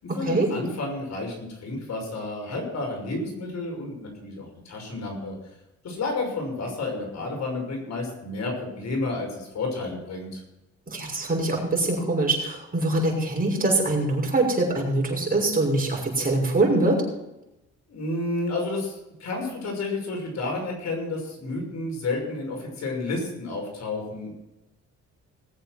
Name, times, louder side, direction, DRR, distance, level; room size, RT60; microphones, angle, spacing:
voice 1, 0.0-5.4 5.8-10.4 17.9-24.3, left 2 dB, 60° left, 1 dB, 6.0 m, -31 dB
voice 2, 10.9-17.0, right 2 dB, 30° right, -1 dB, 6.2 m, -23 dB
19.5 x 7.9 x 6.1 m, 0.93 s
cardioid pair, 90°, 30 cm